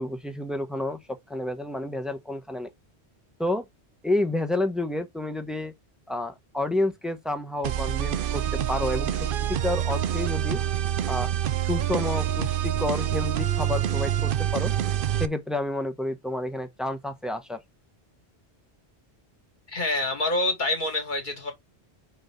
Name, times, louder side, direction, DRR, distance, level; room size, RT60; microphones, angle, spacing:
voice 1, 0.0-2.7 3.4-3.6 4.0-5.7 6.1-9.1 9.5-10.6 11.1-11.3 11.6-14.7 15.2-17.6, left 2 dB, ahead, 1.0 m, -30 dB
sound 1, 7.6-15.3, right 11 dB, 60° right, 0.7 m, -26 dB
voice 2, 19.7-21.5, left 2 dB, 45° left, 2.6 m, -26 dB
5.3 x 4.7 x 5.0 m
omnidirectional pair, 1.1 m